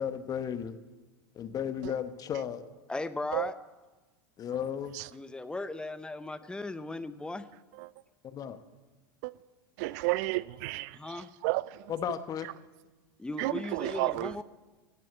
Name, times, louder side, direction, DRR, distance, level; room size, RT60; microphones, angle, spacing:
voice 1, 0.0-0.8 1.4-2.7 4.4-5.0 8.2-8.6 11.9-12.5, left 8 dB, 35° left, 1.1 m, -34 dB
voice 2, 2.9-3.5 5.1-7.5 10.9-11.3 13.2-14.4, left 2 dB, 10° left, 0.8 m, -37 dB
voice 3, 9.8-11.9 13.4-14.4, right 20 dB, 55° right, 0.4 m, -32 dB
17.0 x 7.6 x 8.1 m
hypercardioid pair, 85°, 11 cm